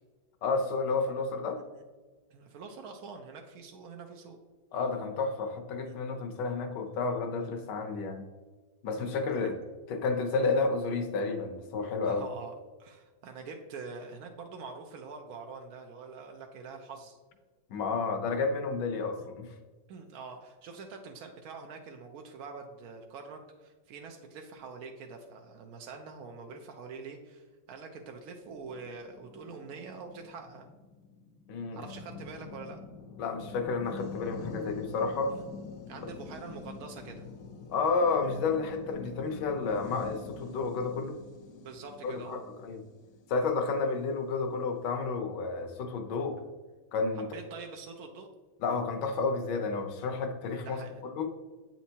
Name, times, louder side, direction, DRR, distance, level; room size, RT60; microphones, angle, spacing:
voice 1, 0.4-1.6 4.7-8.2 8.8-9.6 9.9-12.2 17.7-19.5 31.5-31.8 33.2-35.4 36.0-36.1 37.7-41.2 42.0-42.8 43.3-46.4 46.9-47.3 48.6-51.3, left 4 dB, 65° left, 5 dB, 1.3 m, -31 dB
voice 2, 2.3-4.4 5.8-5.9 7.0-7.1 9.3-9.5 10.5-10.7 12.0-17.2 19.9-30.7 31.7-32.8 35.3-35.4 35.9-37.3 40.4-40.5 41.6-42.4 43.4-43.6 47.3-48.3 50.6-51.2, right 4 dB, 75° right, 3 dB, 0.8 m, -45 dB
sound 1, 28.5-44.0, left 4 dB, 85° left, 0.8 m, -46 dB
8.1 x 4.4 x 2.8 m, 1.4 s
omnidirectional pair, 2.2 m